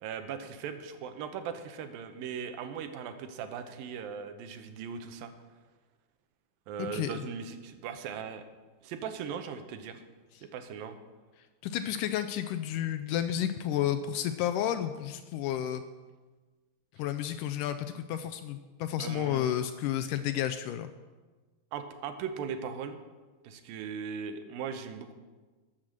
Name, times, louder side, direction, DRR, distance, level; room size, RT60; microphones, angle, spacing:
voice 1, 0.0-5.3 6.7-8.4 8.8-10.0 10.4-11.0 19.0-19.5 21.7-23.0 23.4-25.1, right 7 dB, 80° right, 8 dB, 2.6 m, -39 dB
voice 2, 6.8-7.2 11.6-15.8 17.0-20.9, left 11 dB, 80° left, 10 dB, 1.9 m, -31 dB
13.5 x 7.3 x 6.5 m, 1.3 s
omnidirectional pair, 4.1 m